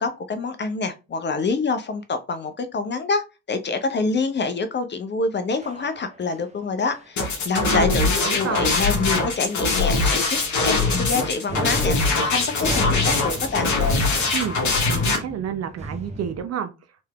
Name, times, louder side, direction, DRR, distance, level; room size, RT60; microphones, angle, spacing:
voice 1, 0.0-13.7, left 4 dB, 30° left, 0.5 m, -26 dB
sound 1, 5.6-6.5 6.8-7.1 7.4-7.6 7.9-8.1 8.5-8.6 9.1-9.4 9.7-9.9 10.3-11.2 11.5-16.4, right 2 dB, 15° right, 0.8 m, -35 dB
sound 2, 7.2-15.2, left 3 dB, 45° left, 1.0 m, -22 dB
voice 2, 7.5-8.8 14.3-14.6 14.9-16.7, right 8 dB, 40° right, 0.5 m, -29 dB
3.2 x 3.0 x 2.2 m
hypercardioid pair, 40°, 40 cm